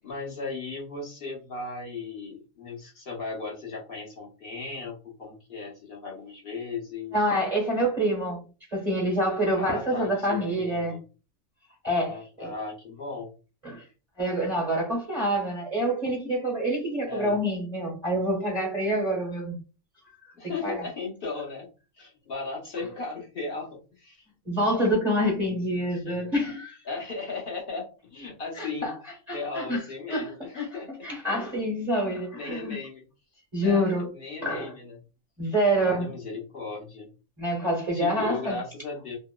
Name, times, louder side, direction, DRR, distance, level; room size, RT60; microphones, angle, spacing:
voice 1, 0.0-7.1 9.6-11.0 12.0-13.3 17.1-17.4 20.4-21.7 22.0-24.3 25.4-26.3 26.8-28.9 29.3-30.9 32.3-33.1 33.6-35.0 35.8-37.1 37.9-39.2, left 4 dB, 45° left, 0.9 m, -36 dB
voice 2, 7.1-8.4 8.7-11.0 11.8-12.5 13.6-13.8 14.2-19.6 20.6-20.8 24.5-26.8 28.6-28.9 29.3-29.8 30.1-30.7 31.0-32.8 33.5-34.1 34.4-34.7 35.4-36.1 37.4-38.5, equal, 35° right, 0.8 m, -27 dB
2.8 x 2.0 x 2.2 m
omnidirectional pair, 1.5 m